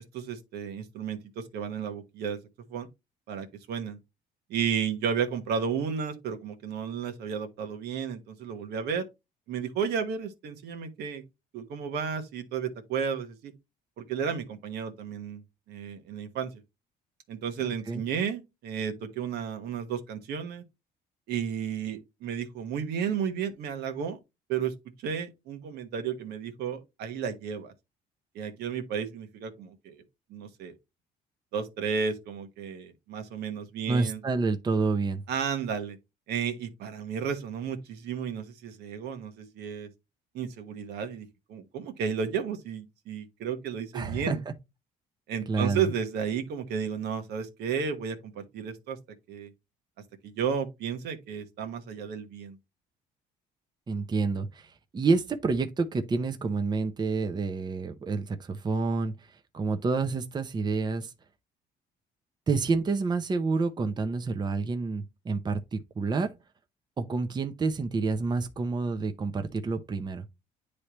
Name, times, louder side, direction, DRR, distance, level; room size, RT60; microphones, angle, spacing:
voice 1, 0.1-2.4 2.7-2.9 3.3-4.0 4.5-9.1 9.5-11.2 11.5-13.5 14.0-16.5 17.3-20.6 21.3-24.2 24.5-24.7 25.0-27.7 28.3-30.0 30.3-30.8 31.5-34.2 35.3-36.0 36.3-39.9 40.3-44.4 45.3-49.0 49.3-49.5 50.2-52.6, right 7 dB, 75° right, 1.2 m, -33 dB
voice 2, 17.6-18.0 33.9-35.2 43.9-44.5 45.5-45.9 53.9-59.1 59.5-61.1 62.5-66.3 67.0-70.3, right 4 dB, 25° right, 0.7 m, -28 dB
9.8 x 3.3 x 2.9 m
cardioid pair, 110°, 17 cm